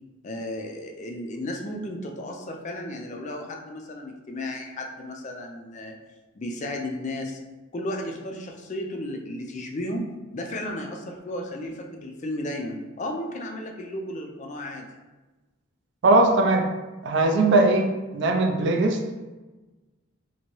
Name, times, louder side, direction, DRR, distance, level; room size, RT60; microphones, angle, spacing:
voice 1, 0.2-6.0 6.4-7.4 7.7-10.0 10.3-14.9, left 1 dB, 35° left, 2 dB, 0.3 m, -34 dB
voice 2, 16.0-16.7 17.0-19.0, right 2 dB, 55° right, 3 dB, 0.3 m, -20 dB
2.9 x 2.6 x 2.9 m, 1.2 s
head